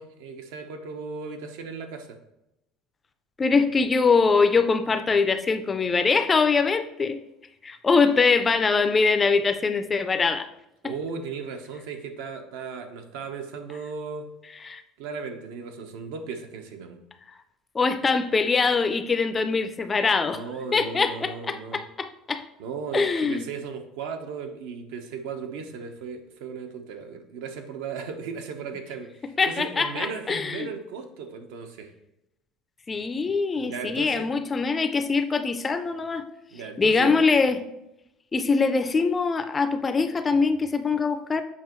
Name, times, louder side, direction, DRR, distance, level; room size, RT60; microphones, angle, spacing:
voice 1, 0.0-2.2 10.8-14.3 15.0-17.0 20.3-21.8 22.6-31.9 33.6-34.3 36.5-37.2, right 5 dB, 80° right, 6 dB, 0.9 m, -36 dB
voice 2, 3.4-7.2 7.6-10.5 14.6-14.8 17.7-20.4 20.7-22.4 22.9-23.4 29.4-30.7 32.9-36.2 36.8-37.6 38.3-41.4, left 4 dB, 15° left, 10 dB, 0.3 m, -23 dB
7.3 x 5.4 x 3.0 m, 0.87 s
cardioid pair, 165°, 0 cm